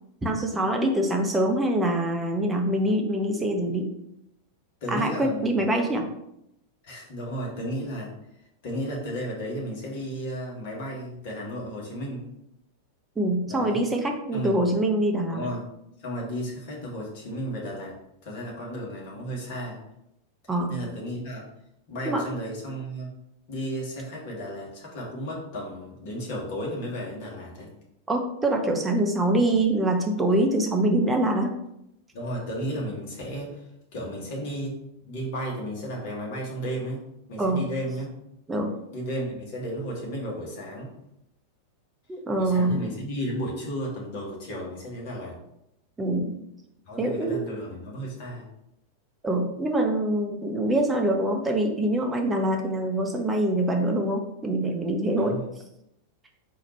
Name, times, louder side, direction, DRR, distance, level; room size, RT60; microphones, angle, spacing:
voice 1, 0.2-3.9 4.9-6.0 13.2-15.5 20.5-20.7 22.0-22.3 28.1-31.5 37.4-37.6 38.5-38.7 42.1-42.9 46.0-46.4 47.0-47.4 49.2-55.4, right 1 dB, 15° right, 2 dB, 0.8 m, -24 dB
voice 2, 4.8-5.6 6.8-8.1 8.6-12.3 13.5-13.8 14.3-14.6 15.3-15.6 16.0-18.0 18.2-19.8 20.7-21.4 21.9-23.1 23.5-27.7 32.1-33.6 33.9-34.8 35.1-38.1 38.9-40.9 42.3-45.4 46.9-48.5 55.2-55.4, equal, 50° left, -3 dB, 1.6 m, -33 dB
4.1 x 2.8 x 4.3 m, 0.81 s
figure-of-eight pair, 90°, 0 cm